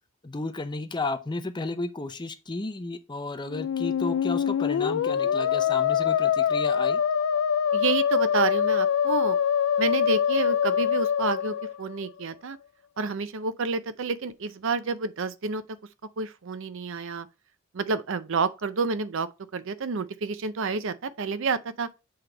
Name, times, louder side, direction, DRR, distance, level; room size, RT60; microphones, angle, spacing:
voice 1, 0.2-7.0, left 2 dB, 20° left, 0.6 m, -33 dB
Musical instrument, 3.5-12.2, left 8 dB, 65° left, 0.3 m, -24 dB
voice 2, 7.7-9.4 9.8-12.6 13.0-15.6 16.2-17.3 17.7-21.9, right 4 dB, 65° right, 0.6 m, -29 dB
7.9 x 3.4 x 3.8 m
head